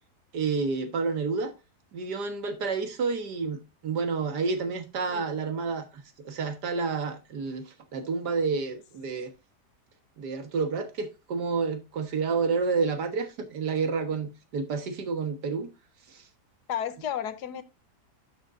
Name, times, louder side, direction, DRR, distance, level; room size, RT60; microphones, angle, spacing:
voice 1, 0.3-1.5 1.9-9.3 10.2-15.7 16.1-16.2, right 4 dB, 90° right, 2.0 m, -30 dB
voice 2, 16.7-17.6, left 9 dB, 80° left, 1.4 m, -32 dB
11.5 x 6.6 x 2.5 m
omnidirectional pair, 1.7 m